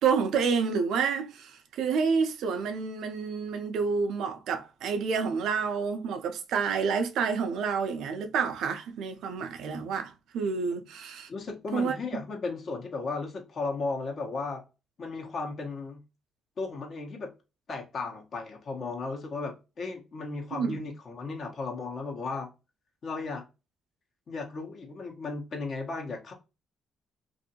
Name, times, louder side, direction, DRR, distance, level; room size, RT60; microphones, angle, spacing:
voice 1, 0.0-11.3 11.7-12.0 20.5-20.8, right 5 dB, 80° right, 0.5 m, -29 dB
voice 2, 11.3-14.6 15.0-16.0 16.6-17.3 17.7-22.5 23.0-23.4 24.3-26.3, left 3 dB, 50° left, 1.0 m, -35 dB
2.6 x 2.6 x 2.7 m
cardioid pair, 90°, 0 cm